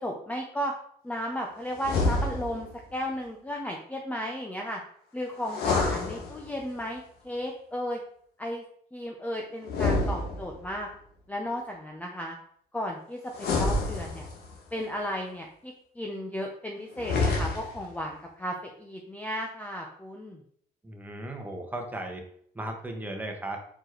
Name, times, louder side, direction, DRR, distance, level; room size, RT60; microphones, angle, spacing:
voice 1, 0.0-0.7 1.0-4.8 5.1-8.0 8.4-8.6 8.9-10.9 11.3-12.4 12.7-14.3 14.7-20.4, equal, 10° left, 1 dB, 0.8 m, -34 dB
sound 1, 1.8-2.7 5.4-6.8 9.6-10.8 13.3-14.6 16.9-17.9, left 3 dB, 70° left, 1.5 m, -28 dB
voice 2, 20.8-22.2 22.5-23.6, right 1 dB, 10° right, 2 dB, 1.3 m, -36 dB
5.0 x 4.4 x 4.5 m, 0.63 s
cardioid pair, 110°, 17 cm